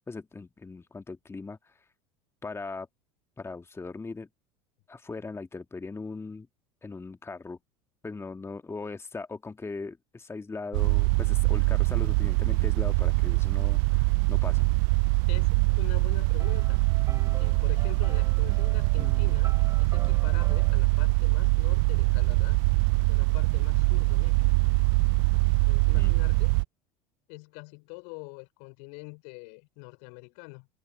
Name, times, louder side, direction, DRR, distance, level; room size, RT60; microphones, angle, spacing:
voice 1, 0.1-1.9 2.4-2.9 3.4-4.3 4.9-6.5 6.8-7.6 8.0-14.7 25.9-26.1, left 3 dB, 15° left, 2.2 m, -39 dB
sound 1, 10.7-26.6, right 33 dB, 50° right, 0.5 m, -23 dB
voice 2, 15.3-16.8 17.4-22.6 23.1-24.6 25.7-26.6 27.3-30.7, left 40 dB or more, 55° left, 4.0 m, -44 dB
sound 2, 16.2-20.8, right 4 dB, 15° right, 4.7 m, -45 dB
figure-of-eight pair, 70°, 18 cm